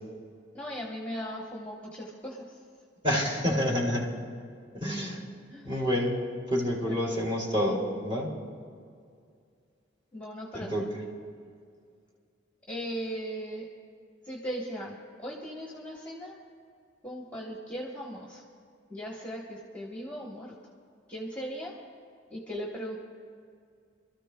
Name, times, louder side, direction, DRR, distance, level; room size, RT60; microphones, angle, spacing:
voice 1, 0.5-2.6 5.5-5.7 6.9-7.2 10.1-10.7 12.7-13.7 14.2-16.4 17.0-18.4 18.9-20.6 21.1-21.8 22.3-23.0, equal, 5° left, -2 dB, 1.1 m, -38 dB
voice 2, 3.0-4.1 4.7-5.2 5.6-6.1 6.5-8.3 10.5-10.8, equal, 30° right, -4 dB, 2.6 m, -28 dB
28.5 x 13.5 x 2.3 m, 2.2 s
head